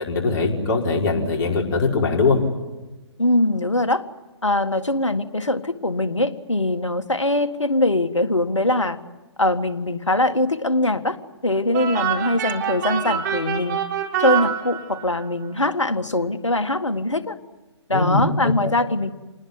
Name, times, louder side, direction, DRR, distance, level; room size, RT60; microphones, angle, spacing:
voice 1, 0.1-2.4 17.9-18.7, left 3 dB, 40° left, 0 dB, 5.4 m, -21 dB
voice 2, 3.2-4.0 4.4-9.0 9.4-11.2 11.4-13.8 14.2-17.4 17.9-19.1, left 1 dB, 85° left, 9 dB, 1.8 m, -22 dB
sound 1, 11.7-15.3, right 9 dB, 40° right, 3.7 m, -26 dB
27.5 x 19.5 x 9.7 m, 1.1 s
figure-of-eight pair, 130°, 15 cm